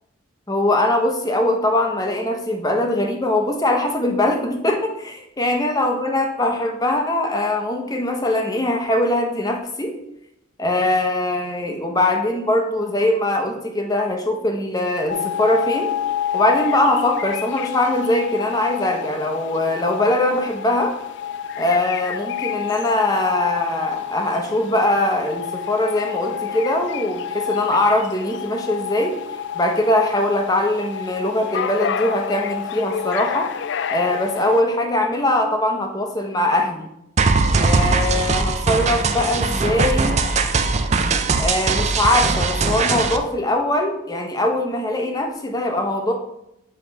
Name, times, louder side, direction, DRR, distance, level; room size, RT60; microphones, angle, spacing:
voice 1, 0.5-10.0 10.6-16.0 16.3-20.9 21.6-29.2 29.5-33.5 33.9-36.9 37.6-40.3 41.4-46.1, left 1 dB, 20° left, 3 dB, 0.8 m, -21 dB
sound 1, 15.1-34.6, left 9 dB, 55° left, 0.3 m, -29 dB
sound 2, 37.2-43.2, right 4 dB, 35° right, 0.4 m, -20 dB
8.0 x 3.2 x 5.3 m, 0.82 s
head